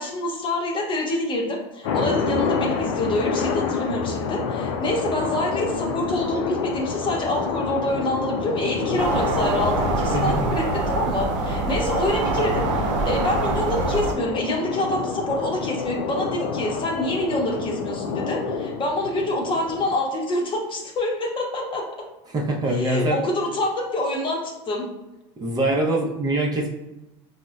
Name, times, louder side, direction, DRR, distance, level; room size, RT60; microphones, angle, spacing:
voice 1, 0.0-21.9 22.7-24.9, left 1 dB, 30° left, 0 dB, 0.9 m, -26 dB
sound 1, 1.8-19.9, left 5 dB, 80° left, 0.4 m, -28 dB
sound 2, 9.0-14.1, right 3 dB, 75° right, 0.5 m, -25 dB
voice 2, 22.3-23.2 25.4-26.7, right 1 dB, 25° right, -2 dB, 0.7 m, -23 dB
4.0 x 2.1 x 2.4 m, 1.0 s
hypercardioid pair, 90°, 16 cm